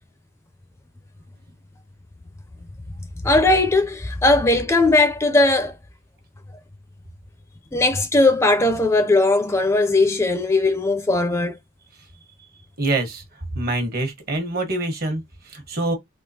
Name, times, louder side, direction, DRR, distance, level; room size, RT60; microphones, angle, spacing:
voice 1, 3.2-5.8 7.7-11.6, left 2 dB, 15° left, 0.4 m, -18 dB
voice 2, 12.8-15.9, right 2 dB, 50° right, 1.2 m, -26 dB
3.6 x 2.9 x 2.7 m
head